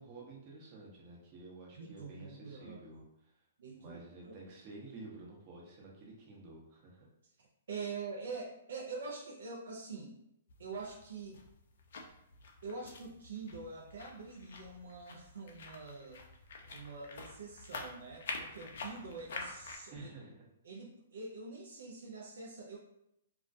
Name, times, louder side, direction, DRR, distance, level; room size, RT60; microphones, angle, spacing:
voice 1, 0.0-3.3 3.8-7.0 19.9-20.5, right 2 dB, 35° right, -3 dB, 0.8 m, -51 dB
voice 2, 1.7-2.8 3.6-4.3 7.7-10.2 10.6-11.4 12.6-16.2 16.7-20.1 20.6-22.8, right 4 dB, 75° right, -2 dB, 0.4 m, -45 dB
sound 1, 10.5-19.8, left 4 dB, 65° left, 0.4 m, -47 dB
2.2 x 2.2 x 2.5 m, 0.79 s
hypercardioid pair, 135°, 0 cm